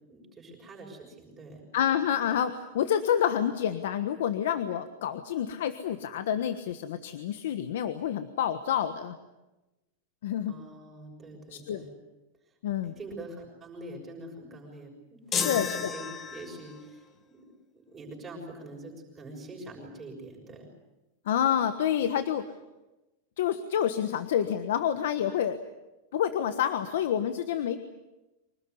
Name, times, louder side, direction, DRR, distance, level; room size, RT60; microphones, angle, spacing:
voice 1, 0.0-1.6 10.5-11.9 12.5-12.6 12.8-15.6 15.9-17.4 17.7-20.7, right 2 dB, 10° right, -1 dB, 6.3 m, -45 dB
voice 2, 1.7-9.1 10.2-10.5 11.5-11.8 12.6-12.9 15.3-15.9 21.2-22.5 23.4-25.6 26.1-27.8, left 9 dB, 70° left, 10 dB, 1.4 m, -28 dB
sound 1, 15.3-16.8, left 7 dB, 20° left, 1.3 m, -32 dB
25.0 x 19.0 x 9.6 m, 1.0 s
supercardioid pair, 175°, 0 cm